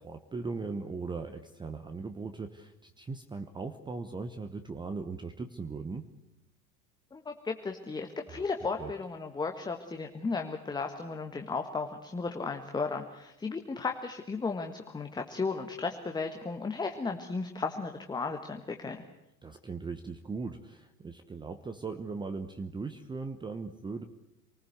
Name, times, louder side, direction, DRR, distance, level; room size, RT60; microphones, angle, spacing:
voice 1, 0.0-6.1 8.3-8.4 8.8-8.9 19.4-24.0, right 4 dB, 10° right, 8 dB, 1.0 m, -39 dB
voice 2, 7.1-19.0, left 4 dB, 10° left, 4 dB, 1.5 m, -35 dB
27.5 x 19.5 x 8.0 m, 0.91 s
figure-of-eight pair, 90°, 49 cm